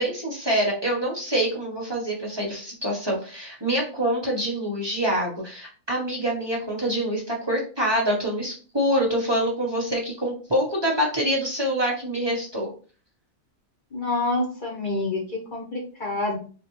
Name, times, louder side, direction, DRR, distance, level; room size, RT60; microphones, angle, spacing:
voice 1, 0.0-12.7, equal, 25° right, -2 dB, 0.7 m, -25 dB
voice 2, 13.9-16.4, left 2 dB, 40° left, -3 dB, 0.9 m, -27 dB
3.6 x 2.3 x 3.0 m, 0.39 s
omnidirectional pair, 1.4 m